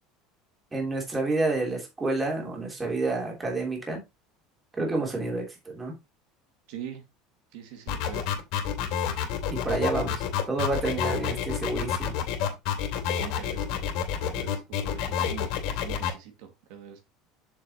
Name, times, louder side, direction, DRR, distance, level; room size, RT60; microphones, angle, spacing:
voice 1, 0.7-4.0 4.8-5.9 9.5-12.2, right 2 dB, 15° right, 0 dB, 3.0 m, -29 dB
voice 2, 6.7-7.0 7.5-8.3 13.1-13.8 14.2-17.0, right 9 dB, 70° right, 5 dB, 2.1 m, -43 dB
sound 1, 7.9-16.1, left 9 dB, 60° left, 2.6 m, -28 dB
7.5 x 6.9 x 2.9 m, 0.24 s
cardioid pair, 155°, 0 cm